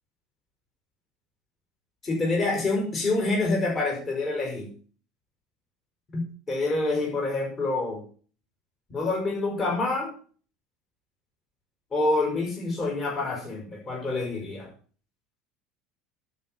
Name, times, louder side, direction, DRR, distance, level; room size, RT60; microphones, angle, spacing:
voice 1, 2.0-4.7 6.1-6.2 6.5-8.0 8.9-10.1 11.9-14.7, left 2 dB, 35° left, -1 dB, 5.9 m, -27 dB
12.0 x 6.3 x 7.7 m, 0.43 s
supercardioid pair, 90°, 0 cm